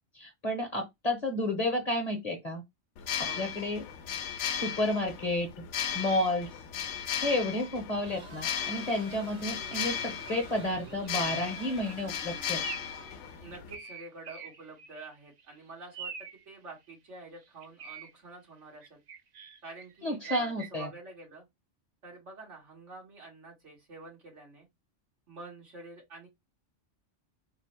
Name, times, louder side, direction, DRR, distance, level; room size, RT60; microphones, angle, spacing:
voice 1, 0.1-2.6 3.4-3.8 4.5-5.5 5.9-6.5 7.2-12.6 20.0-20.9, left 1 dB, 35° left, 1.0 m, -31 dB
sound 1, 3.0-13.8, left 8 dB, 80° left, 0.9 m, -36 dB
sound 2, 8.0-13.3, right 2 dB, 65° right, 1.6 m, -49 dB
sound 3, 9.8-10.5 10.9-11.1 11.6-11.9 12.6-13.0 13.3-15.1 15.4-15.5 15.9-16.4 17.4-18.1 18.8-20.7, right 6 dB, 50° right, 0.6 m, -44 dB
voice 2, 13.4-16.1 16.5-19.0 19.6-21.4 22.0-24.7 25.3-26.3, right 3 dB, 85° right, 2.1 m, -48 dB
4.0 x 2.1 x 4.3 m
omnidirectional pair, 1.2 m